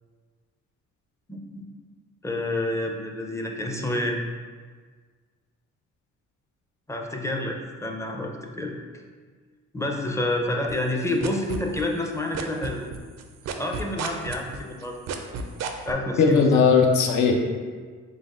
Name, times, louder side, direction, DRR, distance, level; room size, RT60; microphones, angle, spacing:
voice 1, 1.3-1.6 2.2-4.2 6.9-8.8 9.7-12.9 13.6-15.0 15.8-16.5, left 1 dB, 10° left, 1 dB, 0.4 m, -28 dB
sound 1, 10.7-12.1 12.3-15.9, right 6 dB, 60° right, 0.4 m, -32 dB
voice 2, 16.2-17.3, left 5 dB, 75° left, 2 dB, 0.6 m, -18 dB
4.0 x 3.5 x 2.4 m, 1.5 s
cardioid pair, 90°, 30 cm